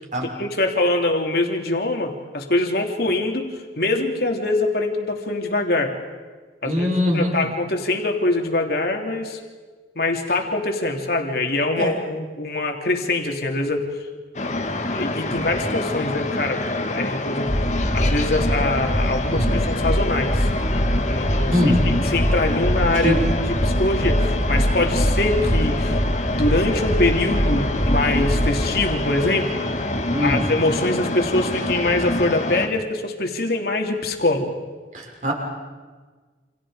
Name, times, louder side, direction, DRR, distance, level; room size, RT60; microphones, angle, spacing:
voice 1, 0.4-3.5 3.8-5.9 6.6-6.9 7.1-9.4 9.9-13.8 14.9-17.5 17.9-20.5 21.1-21.7 22.1-23.2 23.5-26.0 26.3-29.5 30.2-34.5, left 2 dB, 60° left, 2 dB, 3.1 m, -23 dB
voice 2, 6.6-7.5 11.8-11.9 19.3-19.6 21.5-22.0 22.9-23.2 30.1-30.5 34.9-35.3, equal, 45° right, 0 dB, 6.1 m, -22 dB
sound 1, 14.3-32.7, left 2 dB, 40° left, 1.9 m, -26 dB
sound 2, 17.5-28.7, equal, 15° left, 2.8 m, -23 dB
29.0 x 28.0 x 5.1 m, 1.4 s
head